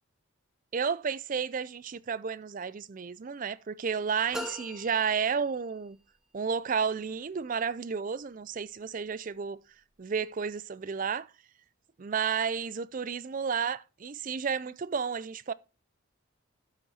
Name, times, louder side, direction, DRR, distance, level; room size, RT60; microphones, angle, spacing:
voice 1, 0.7-6.0 6.3-9.6 10.0-11.3 12.0-15.5, right 6 dB, 35° right, 0.4 m, -32 dB
sound 1, 4.3-6.0, equal, ahead, 1.0 m, -41 dB
12.5 x 5.4 x 4.2 m
head